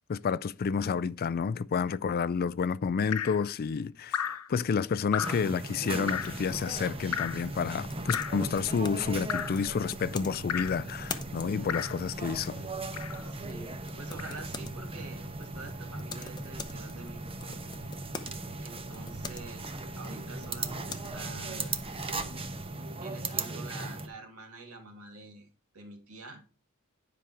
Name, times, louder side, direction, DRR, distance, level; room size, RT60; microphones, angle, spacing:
voice 1, 0.1-12.7, left 6 dB, 45° left, 0.4 m, -30 dB
Drip, 3.1-3.4 4.1-4.5 5.1-5.5 6.1-6.4 7.1-7.5 8.1-8.5 9.3-9.6 10.5-10.8 11.7-12.0 12.9-13.3 14.2-14.4, left 8 dB, 90° left, 0.7 m, -34 dB
sound 1, 5.2-24.1, right 3 dB, 25° right, 0.9 m, -38 dB
sound 2, 6.1-22.7, left 3 dB, 20° left, 0.8 m, -46 dB
voice 2, 13.2-17.6 18.6-21.8 23.0-25.5 25.7-26.4, right 3 dB, 75° right, 2.4 m, -47 dB
10.0 x 5.2 x 4.6 m
head